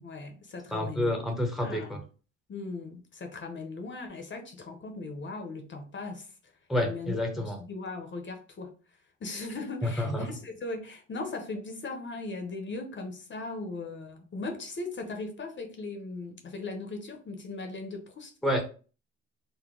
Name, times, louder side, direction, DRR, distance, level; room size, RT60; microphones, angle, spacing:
voice 1, 0.0-1.1 1.6-2.0 2.5-6.3 6.8-7.2 7.6-8.7 9.2-18.3, left 3 dB, 40° left, 0.8 m, -38 dB
voice 2, 0.7-2.0 6.7-7.6 9.8-10.3 18.4-18.6, left 1 dB, ahead, 0.8 m, -29 dB
3.8 x 2.1 x 3.6 m
cardioid pair, 90°, 30 cm